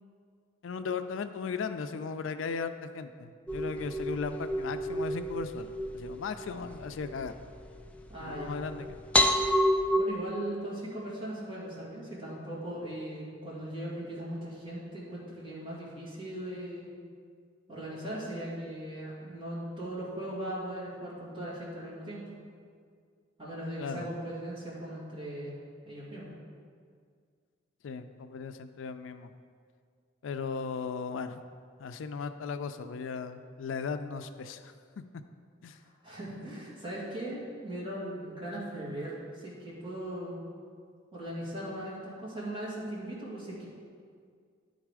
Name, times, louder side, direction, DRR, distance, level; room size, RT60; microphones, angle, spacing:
voice 1, 0.6-7.3 8.2-9.0 23.8-24.1 27.8-29.3 30.2-31.4 31.8-34.7 35.6-35.8, left 5 dB, 85° left, 10 dB, 0.4 m, -37 dB
sound 1, 3.5-10.0, equal, 5° left, 0.3 m, -30 dB
voice 2, 8.1-8.7 10.0-16.9 17.7-22.2 23.4-25.6 25.8-26.3 35.7-40.4 41.1-43.6, right 1 dB, 25° right, -7 dB, 2.1 m, -39 dB
10.0 x 4.0 x 4.8 m, 2.1 s
head